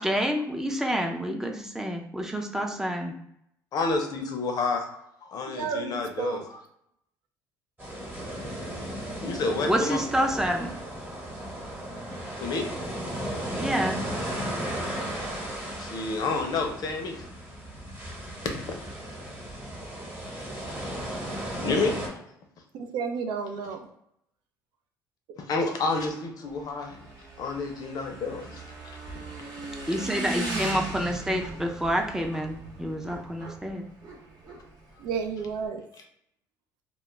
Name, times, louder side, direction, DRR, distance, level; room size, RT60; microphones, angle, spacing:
voice 1, 0.0-3.1 9.7-10.7 13.6-14.0 29.9-33.8, equal, 5° right, 3 dB, 0.4 m, -28 dB
voice 2, 3.7-6.4 8.2-8.7 9.2-10.0 12.4-12.6 15.8-17.2 18.7-18.8 20.2-21.2 21.6-21.9 25.4-27.1 27.4-28.6 29.1-29.2, left 3 dB, 55° left, 4 dB, 0.5 m, -30 dB
voice 3, 5.5-6.5 22.7-23.9 35.0-35.8, right 6 dB, 75° right, 5 dB, 0.3 m, -32 dB
sound 1, 7.8-22.1, right 1 dB, 25° right, 1.0 m, -35 dB
Motorcycle / Engine, 26.5-35.7, right 2 dB, 55° right, 0.9 m, -38 dB
2.2 x 2.0 x 3.0 m, 0.76 s
supercardioid pair, 85°, 8 cm